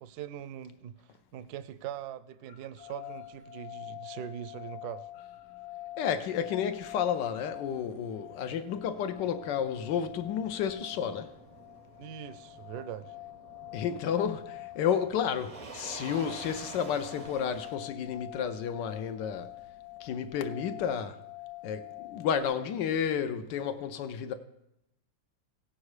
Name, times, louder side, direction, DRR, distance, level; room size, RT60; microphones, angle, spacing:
voice 1, 0.0-5.1 12.0-13.1, right 10 dB, 70° right, 1.0 m, -42 dB
sound 1, 2.8-22.4, left 17 dB, 35° left, 0.7 m, -46 dB
Motor vehicle (road), 5.3-20.4, right 3 dB, 55° right, 0.4 m, -51 dB
voice 2, 6.0-11.3 13.7-19.5 20.0-21.2 21.6-24.3, left 8 dB, 75° left, 1.3 m, -31 dB
16.5 x 6.4 x 4.8 m
omnidirectional pair, 2.0 m